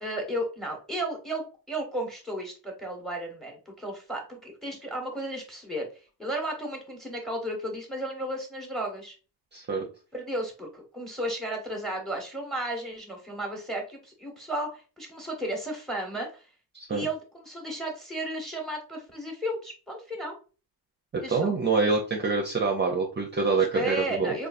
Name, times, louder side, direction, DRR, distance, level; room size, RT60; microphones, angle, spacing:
voice 1, 0.0-5.9 6.2-9.2 10.1-16.4 16.9-20.3 21.2-21.5 23.5-24.5, right 1 dB, ahead, 2 dB, 1.1 m, -34 dB
voice 2, 9.5-9.8 16.7-17.1 21.1-24.3, right 4 dB, 25° right, 1 dB, 0.6 m, -26 dB
3.7 x 2.4 x 2.5 m, 0.34 s
cardioid pair, 115°, 40 cm